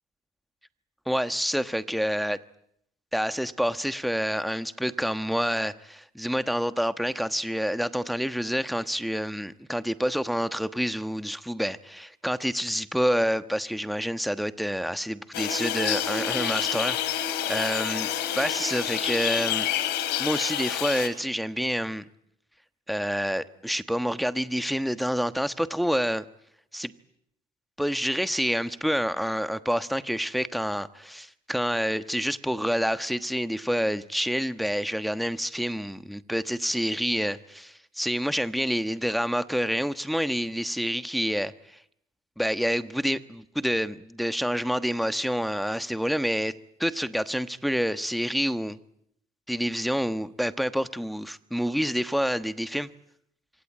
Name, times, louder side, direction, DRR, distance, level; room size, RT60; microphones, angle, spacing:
voice 1, 1.1-2.4 3.1-18.1 18.3-19.7 20.2-22.0 22.9-26.2 26.7-26.9 27.8-41.8 42.4-46.5 46.8-48.8 49.5-52.9, equal, ahead, 12 dB, 1.3 m, -28 dB
sound 1, 15.3-21.1, left 10 dB, 90° left, 3.4 m, -28 dB
26.0 x 24.5 x 8.6 m, 0.72 s
cardioid pair, 110°, 17 cm